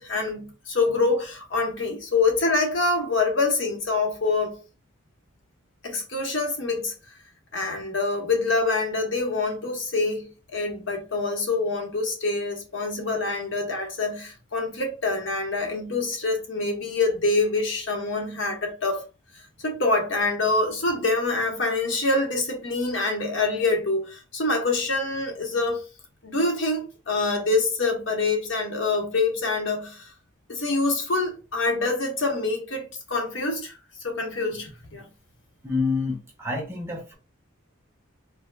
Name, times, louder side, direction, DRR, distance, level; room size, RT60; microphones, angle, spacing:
voice 1, 0.0-4.6 5.8-6.9 7.5-19.0 19.6-25.8 26.2-30.1 30.5-33.7 34.0-35.0, left 3 dB, 60° left, 1.0 m, -25 dB
voice 2, 35.6-37.2, left 4 dB, 10° right, 0.8 m, -28 dB
4.6 x 2.2 x 2.3 m
head